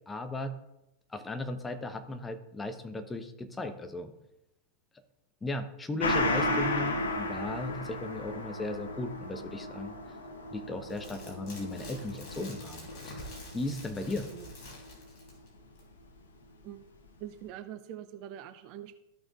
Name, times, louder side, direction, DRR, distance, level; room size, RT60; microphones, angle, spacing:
voice 1, 0.1-0.5 1.1-4.1 5.4-10.0 10.5-14.3, left 2 dB, 10° left, 7 dB, 0.9 m, -37 dB
Gong, 6.0-15.0 15.3-15.4, left 1 dB, 65° left, 1.0 m, -34 dB
sound 1, 10.9-15.5 15.8-15.9, left 2 dB, 40° left, 3.5 m, -47 dB
voice 2, 17.2-19.0, right 11 dB, 40° right, 10 dB, 0.6 m, -44 dB
14.5 x 6.1 x 2.5 m, 0.90 s
figure-of-eight pair, 90°, 0 cm